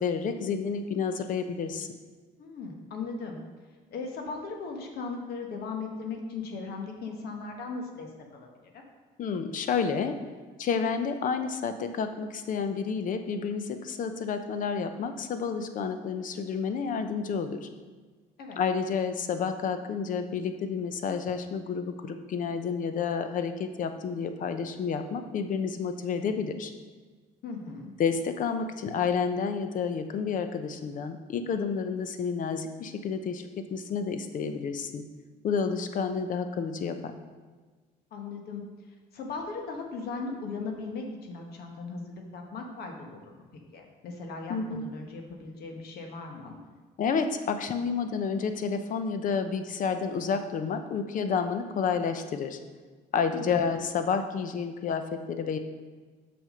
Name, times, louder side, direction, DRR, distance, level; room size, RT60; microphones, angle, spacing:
voice 1, 0.0-1.9 9.2-10.2 10.6-17.7 18.6-26.7 28.0-35.0 35.4-37.1 44.5-44.8 47.0-52.6 53.1-55.6, left 6 dB, 50° left, 8 dB, 0.7 m, -30 dB
voice 2, 2.4-3.4 3.9-8.5 8.7-8.8 18.4-18.6 27.4-27.9 38.1-38.6 39.1-43.4 43.7-46.6 53.3-53.7, left 4 dB, 70° left, 3 dB, 1.4 m, -38 dB
6.2 x 6.2 x 5.1 m, 1.4 s
cardioid pair, 110°, 17 cm